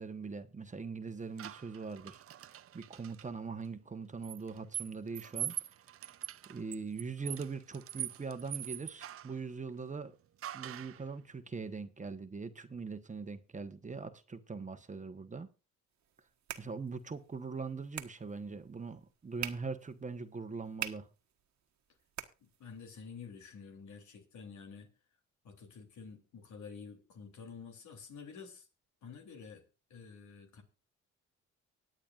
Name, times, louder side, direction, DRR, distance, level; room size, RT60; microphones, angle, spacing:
voice 1, 0.0-2.2 2.7-5.7 6.5-10.1 10.5-15.5 16.6-21.1, right 4 dB, 25° right, 1.2 m, -41 dB
sound 1, 1.4-3.3 4.2-9.4 10.4-11.0, right 11 dB, 50° right, 0.6 m, -43 dB
sound 2, 15.9-23.0, right 11 dB, 65° right, 1.4 m, -47 dB
voice 2, 22.4-24.9 25.4-28.7 29.0-30.6, left 5 dB, 70° left, 3.3 m, -50 dB
24.5 x 9.0 x 2.5 m
cardioid pair, 90°, 30 cm